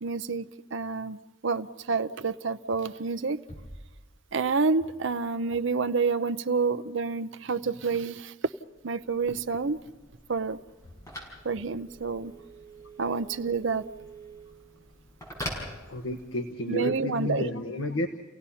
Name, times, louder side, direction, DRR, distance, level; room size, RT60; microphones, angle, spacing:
voice 1, 0.0-3.4 4.3-8.3 8.8-9.8 10.3-10.6 11.4-12.3 13.0-13.9 16.7-17.5, right 4 dB, 70° right, 10 dB, 0.7 m, -28 dB
sound 1, 3.5-5.1, equal, 35° left, 5.1 m, -48 dB
Telephone, 8.6-16.5, equal, 15° left, 6.1 m, -44 dB
voice 2, 15.9-18.1, left 1 dB, 80° left, 5 dB, 1.4 m, -31 dB
30.0 x 17.0 x 5.7 m, 1.2 s
head